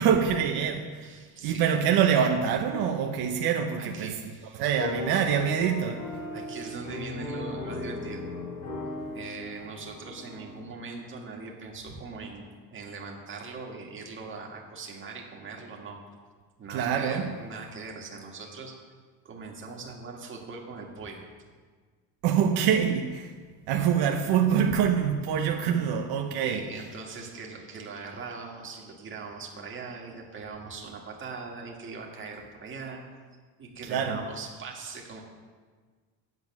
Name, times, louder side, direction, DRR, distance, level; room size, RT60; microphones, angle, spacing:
voice 1, 0.0-1.1 1.4-4.1 4.5-6.1 16.7-17.3 22.2-23.3 23.7-26.6 33.9-34.2, right 8 dB, 75° right, 0.9 m, -25 dB
voice 2, 1.0-1.7 3.8-4.6 6.3-8.3 9.1-16.0 16.6-18.7 19.3-21.2 26.4-33.0 33.6-35.2, right 4 dB, 30° right, 1.8 m, -41 dB
sound 1, 4.7-10.6, left 2 dB, 70° left, 3.8 m, -37 dB
9.3 x 7.7 x 6.0 m
cardioid pair, 145°, 38 cm